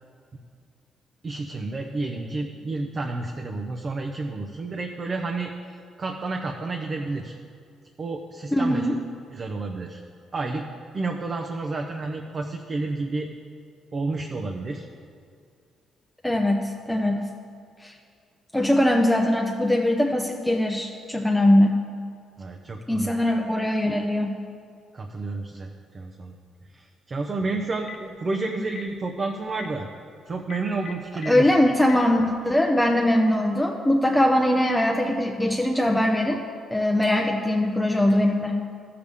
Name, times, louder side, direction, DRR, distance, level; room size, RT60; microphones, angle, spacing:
voice 1, 1.2-7.3 8.0-8.9 9.3-10.0 10.3-10.7 10.9-13.3 13.9-14.9 22.4-23.1 24.9-26.4 26.7-29.9 30.3-31.7 38.1-38.2, right 3 dB, 40° right, 2 dB, 0.7 m, -30 dB
voice 2, 8.5-9.0 16.2-17.2 17.8-17.9 18.5-21.8 22.9-24.4 31.3-36.4 36.7-38.6, left 1 dB, 5° left, 1 dB, 0.7 m, -21 dB
Telephone, 27.6-28.1 28.7-28.9 29.5-29.7 30.4-31.3 31.8-32.0, left 7 dB, 45° left, 0.8 m, -38 dB
14.0 x 6.7 x 3.6 m, 2.3 s
cardioid pair, 90°, 0 cm